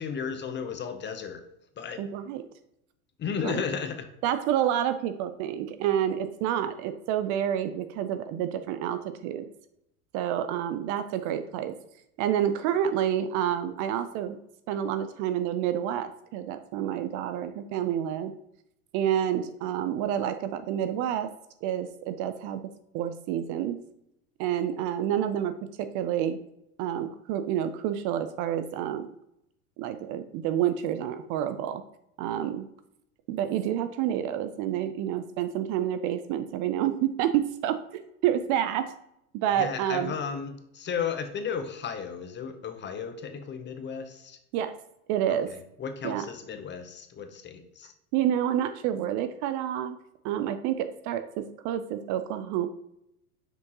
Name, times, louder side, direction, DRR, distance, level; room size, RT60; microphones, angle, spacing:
voice 1, 0.0-1.4 1.8-2.0 3.2-4.0 39.6-44.4 45.3-47.9, left 6 dB, 25° left, 8 dB, 0.8 m, -34 dB
voice 2, 2.0-2.4 3.4-3.6 4.2-9.5 10.1-11.7 12.2-14.4 14.7-18.3 18.9-21.3 21.6-22.6 22.9-23.8 24.4-26.4 26.8-29.1 29.8-31.8 32.2-32.7 33.3-38.9 39.3-40.1 44.5-44.8 45.1-45.5 46.0-46.3 48.1-50.0 50.2-52.7, right 10 dB, 45° right, 10 dB, 0.5 m, -28 dB
6.2 x 5.2 x 2.9 m, 0.80 s
hypercardioid pair, 100°, 44 cm